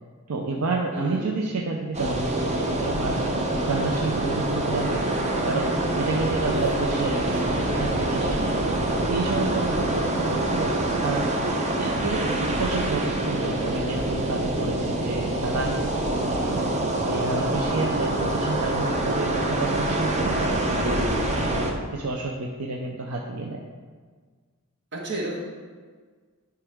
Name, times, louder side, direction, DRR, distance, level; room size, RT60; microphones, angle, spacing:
voice 1, 0.3-3.2 3.6-5.2 5.4-5.7 6.0-8.6 9.1-11.3 11.8-15.7 16.2-21.0 21.5-23.6, right 3 dB, 75° right, 0 dB, 0.6 m, -30 dB
voice 2, 0.9-1.5 6.4-7.7 20.8-21.5 24.9-25.4, right 1 dB, 55° right, -2 dB, 1.5 m, -33 dB
sound 1, 1.9-21.7, right 1 dB, 30° right, 0.7 m, -25 dB
10.0 x 4.7 x 3.5 m, 1.5 s
head